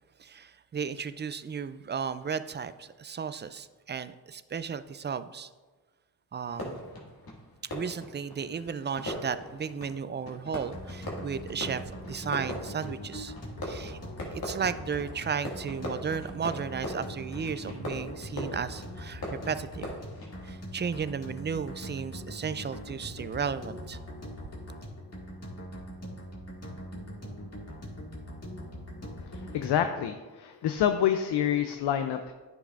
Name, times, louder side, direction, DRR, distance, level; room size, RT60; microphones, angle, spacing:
voice 1, 0.2-5.5 6.3-6.8 7.7-13.3 13.7-14.0 14.3-19.9 20.4-24.0, right 6 dB, 30° right, 14 dB, 0.4 m, -34 dB
Fireworks, 6.4-20.7, left 1 dB, 60° left, 2.0 m, -41 dB
sound 1, 10.7-29.9, equal, 40° left, 1.9 m, -42 dB
voice 2, 29.2-32.3, left 9 dB, 80° left, 8 dB, 0.5 m, -28 dB
9.6 x 6.0 x 2.5 m, 1.3 s
cardioid pair, 50°, 40 cm